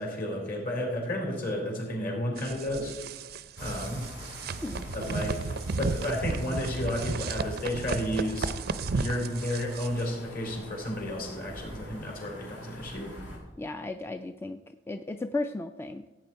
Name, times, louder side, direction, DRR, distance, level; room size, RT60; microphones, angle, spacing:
voice 1, 0.0-2.9 3.6-4.0 4.8-5.4 5.8-8.5 8.9-13.2, left 1 dB, 55° left, 0 dB, 4.2 m, -32 dB
sound 1, 2.4-10.0, right 4 dB, 55° right, 0.5 m, -34 dB
sound 2, 3.6-13.3, equal, 85° left, 5.0 m, -45 dB
voice 2, 13.6-14.6 14.9-16.1, left 2 dB, 15° left, 8 dB, 0.3 m, -34 dB
16.0 x 8.7 x 4.5 m, 1.1 s
head